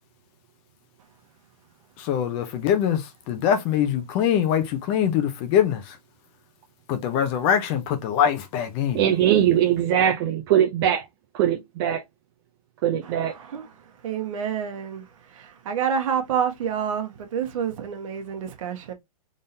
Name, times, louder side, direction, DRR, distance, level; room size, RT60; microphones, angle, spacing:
voice 1, 2.0-5.9 6.9-9.0, left 9 dB, 30° left, 0.8 m, -23 dB
voice 2, 8.9-11.1 11.3-12.0 12.8-13.3, right 10 dB, 40° right, 0.7 m, -21 dB
voice 3, 14.0-15.0 15.3-18.9, right 8 dB, 55° right, 1.4 m, -28 dB
3.7 x 3.7 x 2.7 m
hypercardioid pair, 145°, 20 cm